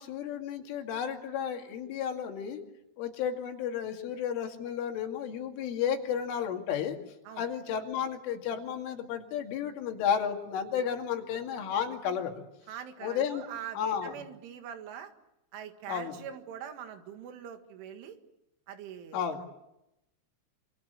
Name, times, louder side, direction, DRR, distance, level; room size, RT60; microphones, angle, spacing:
voice 1, 0.0-2.6 3.0-7.0 7.4-12.4 13.0-13.4 13.7-14.2 15.9-16.2 19.1-19.4, left 8 dB, 80° left, 4 dB, 4.9 m, -32 dB
voice 2, 12.7-15.1 15.5-18.2 18.7-19.5, right 9 dB, 75° right, 7 dB, 4.4 m, -43 dB
27.0 x 26.5 x 8.1 m, 0.87 s
omnidirectional pair, 5.6 m